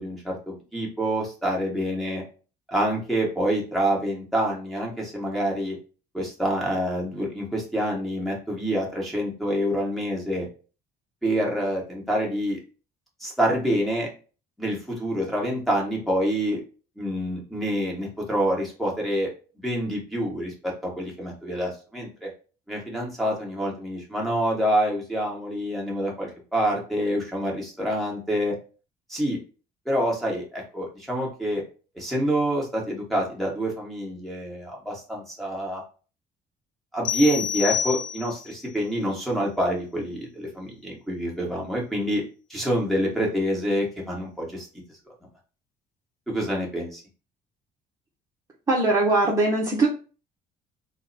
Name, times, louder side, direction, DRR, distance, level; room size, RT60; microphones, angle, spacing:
voice 1, 0.0-2.2 2.7-5.8 6.1-10.5 11.2-12.6 13.2-14.1 14.6-16.6 17.0-19.3 19.6-22.3 22.7-28.5 29.1-29.4 29.8-31.6 31.9-35.8 36.9-42.2 42.5-44.7 46.3-47.0, equal, ahead, -3 dB, 1.4 m, -27 dB
sound 1, 37.0-38.6, left 8 dB, 60° left, 0.7 m, -28 dB
voice 2, 48.7-49.9, right 2 dB, 20° right, -5 dB, 0.8 m, -21 dB
3.7 x 2.2 x 4.0 m, 0.36 s
cardioid pair, 125°, 17 cm